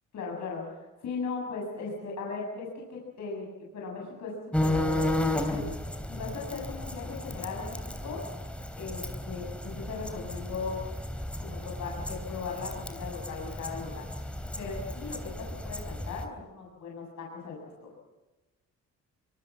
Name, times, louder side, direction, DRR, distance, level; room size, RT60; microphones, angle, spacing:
voice 1, 0.1-3.5 3.7-4.3 4.6-5.6 6.1-8.2 8.8-10.8 11.4-14.1 14.6-17.9, left 4 dB, 65° left, -2 dB, 7.5 m, -38 dB
sound 1, 4.5-16.2, left 1 dB, 5° left, 3.5 m, -34 dB
25.0 x 23.5 x 7.4 m, 1.1 s
cardioid pair, 90°, 30 cm